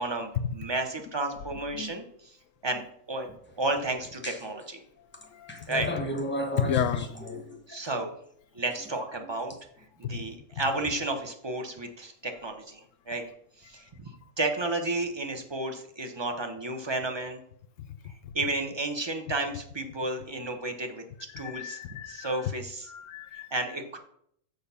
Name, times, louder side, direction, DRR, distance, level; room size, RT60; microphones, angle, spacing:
voice 1, 0.0-2.4 2.6-2.8 3.1-3.3 3.6-4.8 5.7-5.9 7.7-8.1 8.5-9.5 10.0-13.2 13.6-14.1 14.4-17.4 18.3-21.0 21.4-21.8 22.1-22.9 23.5-24.0, right 2 dB, 20° right, 5 dB, 0.8 m, -32 dB
sound 1, 4.2-4.6 5.1-7.8 8.7-9.5, equal, 10° left, 0.8 m, -35 dB
voice 2, 5.3-5.7 6.6-7.1 10.0-10.2 17.8-17.9 21.3-22.4 22.9-23.5, left 8 dB, 65° left, 13 dB, 0.9 m, -31 dB
6.7 x 6.4 x 5.5 m, 0.70 s
omnidirectional pair, 1.6 m